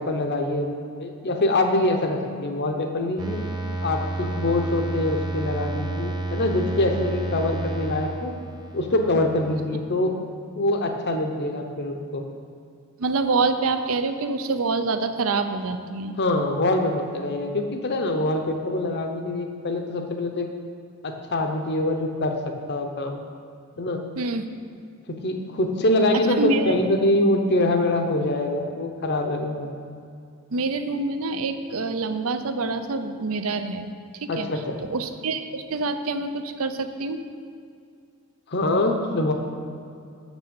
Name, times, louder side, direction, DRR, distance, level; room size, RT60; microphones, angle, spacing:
voice 1, 0.0-3.4 3.8-8.3 8.7-10.1 10.5-12.3 16.2-20.5 21.0-23.2 23.8-24.0 25.1-29.7 34.3-34.8 38.5-39.3, left 1 dB, 50° left, 4 dB, 0.8 m, -24 dB
sound 1, 3.2-9.6, right 2 dB, 20° right, 0.9 m, -30 dB
voice 2, 13.0-16.1 24.2-24.5 26.4-26.7 30.5-33.9 34.2-34.5 34.9-37.2, right 3 dB, 65° right, 9 dB, 0.5 m, -26 dB
6.5 x 6.1 x 7.0 m, 2.4 s
head